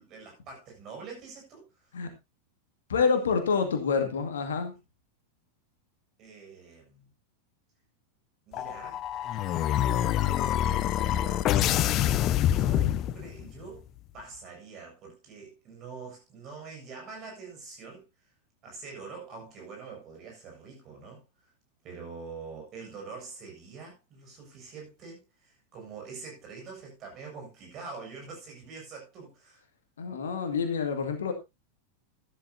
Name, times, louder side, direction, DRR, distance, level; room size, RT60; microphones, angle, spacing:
voice 1, 0.0-2.0 6.2-7.1 8.5-9.0 9.7-10.0 10.5-11.9 12.5-13.9 14.1-18.1 18.6-21.5 21.8-29.6, right 4 dB, 35° right, 7.5 m, -45 dB
voice 2, 2.9-4.7 30.0-31.3, left 5 dB, 65° left, 2.1 m, -27 dB
sound 1, 8.5-13.5, left 12 dB, 35° left, 0.6 m, -26 dB
13.5 x 12.0 x 2.8 m
figure-of-eight pair, 90°, 0 cm